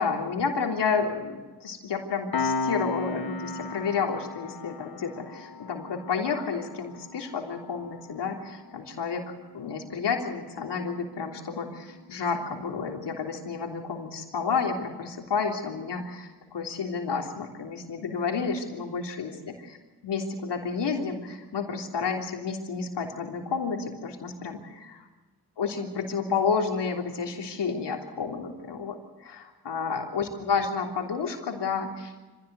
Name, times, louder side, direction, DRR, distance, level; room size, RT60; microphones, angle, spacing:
voice 1, 0.0-19.8 20.0-25.0 25.6-32.3, left 5 dB, 80° left, 2 dB, 3.4 m, -31 dB
Piano, 2.3-13.4, left 3 dB, 60° left, 1.3 m, -37 dB
25.5 x 16.5 x 8.2 m, 1.2 s
supercardioid pair, 40°, 42 cm